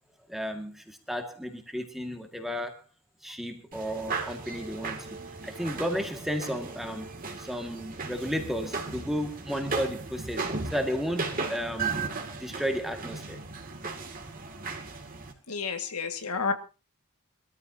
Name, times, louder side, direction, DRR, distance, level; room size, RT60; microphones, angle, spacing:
voice 1, 0.3-2.8 3.2-5.2 5.4-12.0 12.4-13.4, equal, ahead, 4 dB, 2.0 m, -33 dB
sound 1, 3.7-15.3, right 4 dB, 40° right, 2.6 m, -36 dB
voice 2, 15.5-16.5, left 5 dB, 85° left, 6 dB, 2.1 m, -30 dB
24.0 x 13.5 x 2.9 m, 0.31 s
head